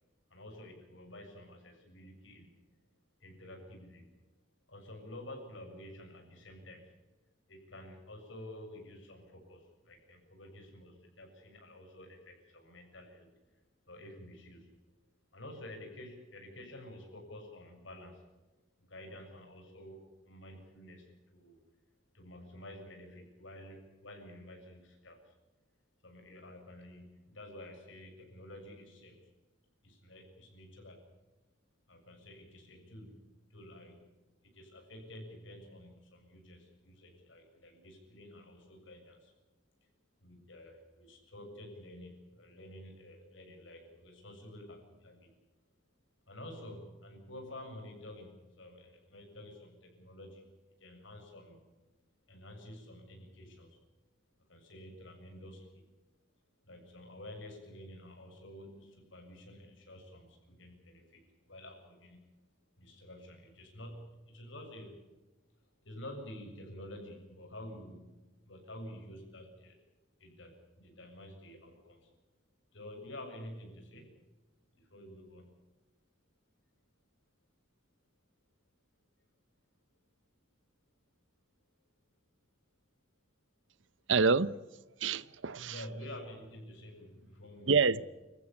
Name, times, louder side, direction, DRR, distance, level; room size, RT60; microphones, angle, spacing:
voice 1, 0.3-2.6 3.2-4.1 4.7-7.0 7.5-13.3 13.9-14.8 15.3-18.2 18.8-21.6 22.1-25.3 26.0-29.3 29.8-31.1 31.9-39.3 40.2-45.4 46.3-50.5 50.8-51.7 52.3-53.8 54.5-55.9 56.6-62.3 62.8-65.1 65.8-69.8 70.2-72.1 72.7-74.2 74.8-75.6 85.7-88.0, left 1 dB, 75° left, 7.2 m, -50 dB
voice 2, 84.1-84.6 85.0-85.7 87.7-88.0, right 4 dB, 70° right, 0.7 m, -27 dB
27.0 x 14.5 x 8.7 m
head